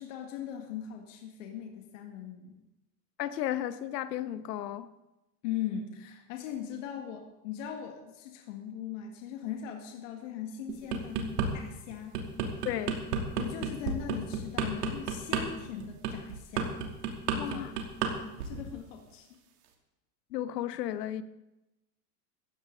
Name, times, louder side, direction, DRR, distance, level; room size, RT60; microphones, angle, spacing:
voice 1, 0.0-2.6 5.4-12.2 13.4-16.7 17.3-17.7 18.4-19.4, left 9 dB, 50° left, 1.9 m, -39 dB
voice 2, 3.2-4.9 12.6-13.0 17.4-17.7 18.7-18.8 20.3-21.2, left 12 dB, 75° left, 1.2 m, -34 dB
sound 1, 10.7-11.5 11.9-18.1 18.4-18.7, right 6 dB, 70° right, 3.0 m, -31 dB
17.5 x 15.0 x 3.9 m
supercardioid pair, 170°, 49 cm